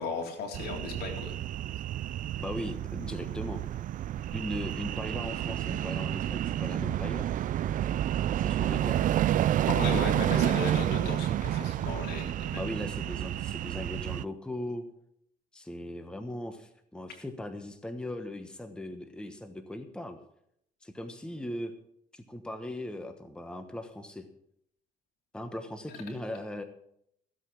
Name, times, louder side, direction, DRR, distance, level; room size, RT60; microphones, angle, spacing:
voice 1, 0.0-1.3 9.7-12.7, left 3 dB, 70° left, 1 dB, 3.6 m, -35 dB
sound 1, 0.5-14.2, right 12 dB, 50° right, 0.4 m, -30 dB
voice 2, 2.4-3.6 4.3-7.3 8.4-9.0 12.6-14.8 15.5-20.2 20.8-21.7 22.1-24.3 25.3-26.6, left 1 dB, 5° left, 7 dB, 1.2 m, -38 dB
15.0 x 8.2 x 6.0 m, 0.72 s
cardioid pair, 110°, 17 cm